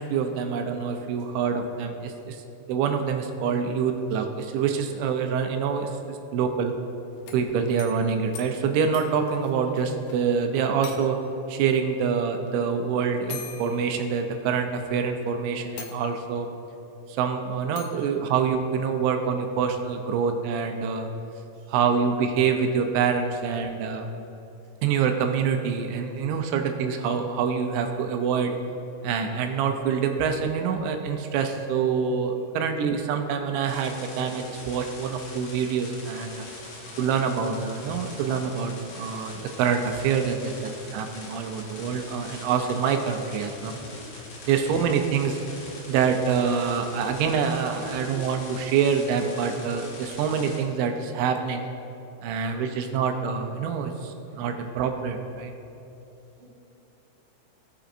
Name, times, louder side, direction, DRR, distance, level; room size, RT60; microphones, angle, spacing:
voice 1, 0.0-2.4 2.7-6.7 7.3-11.2 11.5-16.5 17.1-21.1 21.7-24.1 24.8-28.6 29.0-36.5 37.0-43.8 44.5-45.4 45.9-51.7 52.2-55.5, right 6 dB, 80° right, 5 dB, 2.9 m, -26 dB
sound 1, 7.1-10.2 10.4-10.5 10.8-11.4 12.5-12.6 13.3-14.7 15.2-15.3 15.8-16.5 17.8-18.1, left 7 dB, 90° left, 2.2 m, -43 dB
sound 2, 33.6-50.6, left 2 dB, 65° left, 4.1 m, -43 dB
voice 2, 36.3-37.1 43.7-44.1 45.6-45.7 46.8-47.1 47.8-48.0 52.3-52.5 54.3-55.0 56.4-56.5, equal, 25° right, -7 dB, 1.5 m, -53 dB
19.0 x 7.0 x 2.5 m, 2.8 s
omnidirectional pair, 5.4 m